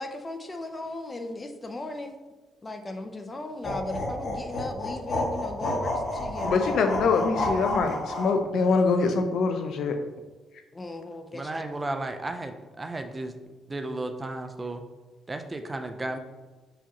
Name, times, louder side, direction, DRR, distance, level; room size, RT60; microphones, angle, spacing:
voice 1, 0.0-2.2 2.6-7.1 10.7-11.7, left 2 dB, 25° left, 7 dB, 0.7 m, -37 dB
sound 1, 3.6-8.4, left 1 dB, 50° left, 1.9 m, -30 dB
voice 2, 6.4-10.0, left 4 dB, 70° left, 7 dB, 0.6 m, -24 dB
voice 3, 11.3-13.4 13.7-14.8 15.3-16.2, right 2 dB, 20° right, 7 dB, 0.6 m, -34 dB
6.7 x 4.9 x 3.0 m, 1.2 s
cardioid pair, 90°, 0 cm